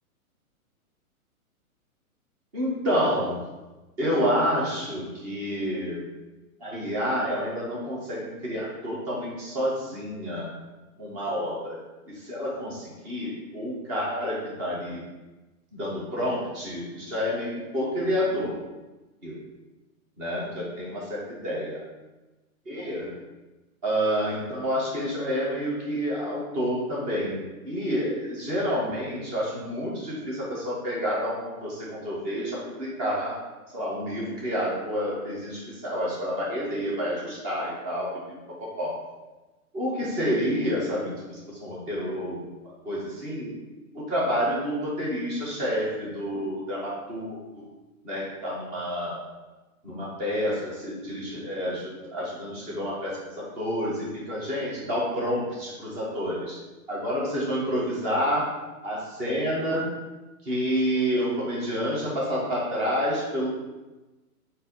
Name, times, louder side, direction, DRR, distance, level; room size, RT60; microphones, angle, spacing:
voice 1, 2.5-3.4 4.0-6.0 6.6-10.5 11.0-11.8 12.1-15.0 15.7-18.6 19.2-19.4 20.2-21.8 22.7-23.1 23.8-33.4 33.7-38.1 38.6-39.0 39.7-42.4 42.8-43.5 43.9-47.6 48.0-49.2 49.8-56.6 56.9-58.5 58.8-59.9 60.4-63.5, equal, 10° right, -6 dB, 0.4 m, -29 dB
3.9 x 2.5 x 3.9 m, 1.1 s
hypercardioid pair, 140°, 43 cm